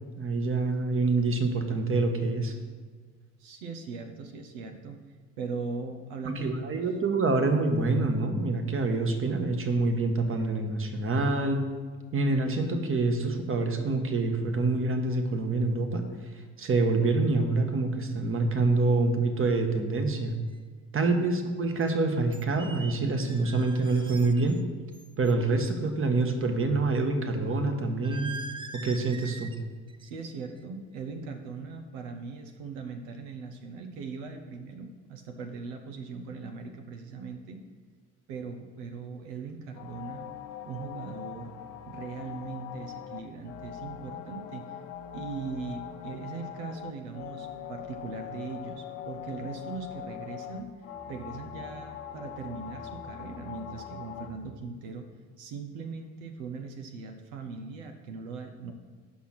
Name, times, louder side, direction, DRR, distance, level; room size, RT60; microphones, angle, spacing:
voice 1, 0.2-2.5 6.3-11.7 12.1-16.0 16.6-20.3 20.9-24.6 25.2-28.3 28.7-29.5, right 3 dB, 35° right, 5 dB, 1.4 m, -26 dB
voice 2, 3.4-5.0 5.4-6.5 21.0-21.3 30.0-37.6 38.3-40.3 40.6-41.5 41.9-44.8 45.1-50.7 51.1-55.1 55.4-58.7, right 4 dB, 75° right, 5 dB, 0.9 m, -39 dB
sound 1, 20.5-20.6 21.8-21.9 22.3-24.6 24.9-25.3 28.0-29.6 29.9-30.2 30.6-30.9, right 3 dB, 15° right, 0.5 m, -43 dB
sound 2, 39.7-54.3, left 9 dB, 85° left, 0.9 m, -42 dB
8.3 x 6.0 x 5.8 m, 1.5 s
hypercardioid pair, 65°, 37 cm